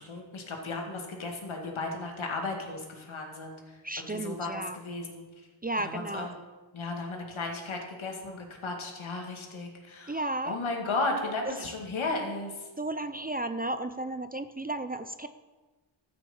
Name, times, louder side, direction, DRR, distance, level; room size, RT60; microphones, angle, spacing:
voice 1, 0.0-3.6 4.0-5.2 5.8-6.4 6.7-10.2 10.5-12.5, left 3 dB, 80° left, 2 dB, 2.3 m, -35 dB
voice 2, 3.8-4.8 5.6-6.3 10.1-10.6 11.5-11.7 12.8-15.3, right 2 dB, 20° right, 10 dB, 0.5 m, -33 dB
13.0 x 6.2 x 7.1 m, 1.2 s
wide cardioid pair, 95°, 47 cm